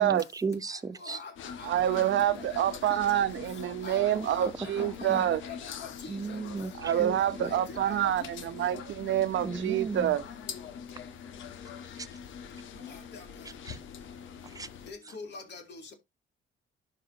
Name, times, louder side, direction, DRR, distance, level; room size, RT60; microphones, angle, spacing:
voice 1, 0.0-1.2 4.2-4.3 4.8-5.2 6.1-7.5 9.4-10.1 13.7-13.8 14.6-14.7, right 4 dB, 20° right, 0.6 m, -35 dB
voice 2, 1.0-1.3 1.6-2.1 2.4-2.8 3.1-3.2 3.8-4.5 4.8-5.9 6.3-6.4 7.0-7.6 7.9-8.0 12.8-13.2 14.9-15.9, left 5 dB, 60° left, 2.5 m, -45 dB
sound 1, 1.4-14.9, left 7 dB, 80° left, 1.1 m, -43 dB
voice 3, 1.6-5.4 6.8-10.2, right 11 dB, 70° right, 0.8 m, -27 dB
11.5 x 5.0 x 2.8 m
cardioid pair, 90°, 20 cm